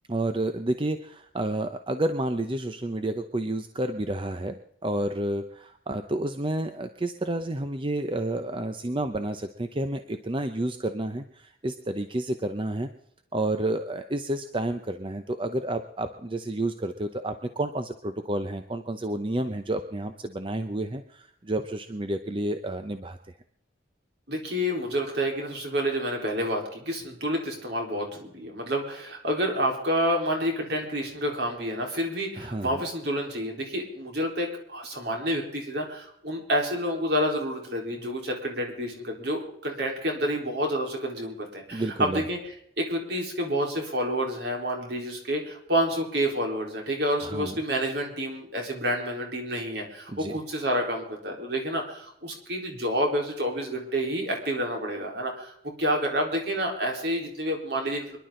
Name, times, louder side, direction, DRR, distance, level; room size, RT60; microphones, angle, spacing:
voice 1, 0.1-12.9 13.3-23.2 32.4-32.8 41.7-42.2 47.2-47.6 50.1-50.4, right 1 dB, 30° right, 8 dB, 0.7 m, -30 dB
voice 2, 24.3-42.4 42.8-58.2, equal, 60° right, 1 dB, 3.9 m, -29 dB
25.5 x 11.5 x 3.8 m, 0.70 s
head